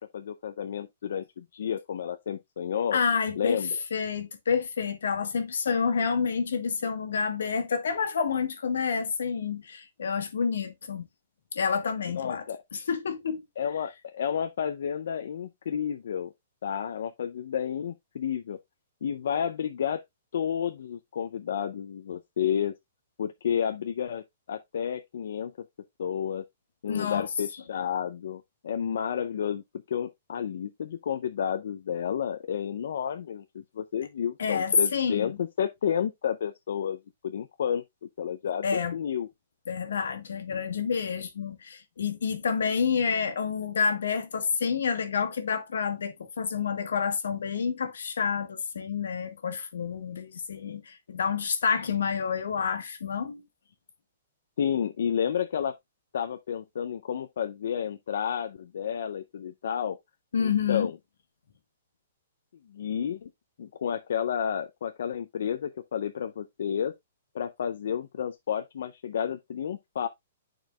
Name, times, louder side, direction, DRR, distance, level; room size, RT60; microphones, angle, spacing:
voice 1, 0.1-3.0 3.4-3.7 12.1-12.6 13.6-16.3 16.6-18.6 19.0-20.0 20.3-22.7 23.2-25.5 26.0-26.4 26.8-29.6 29.9-37.0 37.2-37.8 38.2-39.3 54.6-55.7 56.1-60.0 60.4-60.9 62.7-63.3 63.6-66.9 67.3-70.1, left 8 dB, 70° left, 0.5 m, -31 dB
voice 2, 2.9-3.6 3.9-11.1 11.5-12.4 12.7-13.4 26.9-27.3 34.4-35.4 38.6-38.9 39.7-53.4 60.3-60.9, left 6 dB, 90° left, 1.4 m, -28 dB
10.5 x 4.5 x 2.3 m
hypercardioid pair, 165°, 0 cm